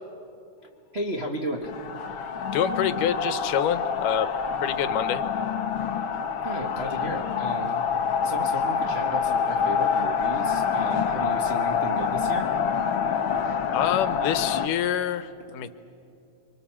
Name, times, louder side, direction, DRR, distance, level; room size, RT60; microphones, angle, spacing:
voice 1, 0.9-1.7 6.4-7.8 8.2-12.5, right 1 dB, 70° right, 0 dB, 0.6 m, -34 dB
sound 1, 1.6-14.7, left 6 dB, 70° left, 1.2 m, -26 dB
voice 2, 2.5-4.3 4.6-5.2 13.7-15.7, left 10 dB, 90° left, 12 dB, 2.5 m, -26 dB
29.5 x 23.5 x 7.4 m, 2.6 s
omnidirectional pair, 3.6 m